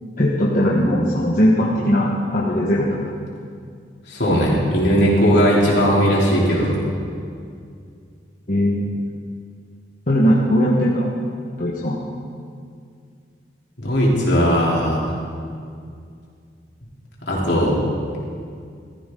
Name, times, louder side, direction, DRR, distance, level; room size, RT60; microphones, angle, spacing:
voice 1, 0.2-3.2 8.5-8.8 10.1-11.1 11.6-12.0, equal, 45° left, -5 dB, 1.4 m, -19 dB
voice 2, 4.1-6.8 13.8-15.0 17.3-17.8, equal, 65° left, -5 dB, 3.5 m, -18 dB
16.0 x 14.0 x 3.9 m, 2.3 s
head